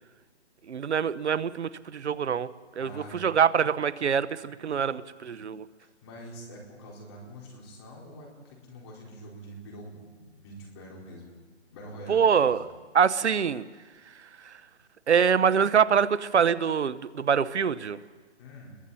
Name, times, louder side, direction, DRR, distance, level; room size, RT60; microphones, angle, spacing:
voice 1, 0.7-5.7 12.1-12.6 12.9-13.6 14.4-14.5 15.1-18.0, right 7 dB, 70° right, 16 dB, 1.0 m, -24 dB
voice 2, 2.8-3.3 5.8-11.4 11.7-12.7 18.4-18.8, equal, 25° left, -3 dB, 4.6 m, -45 dB
28.0 x 22.5 x 4.3 m, 1.4 s
hypercardioid pair, 165°, 35 cm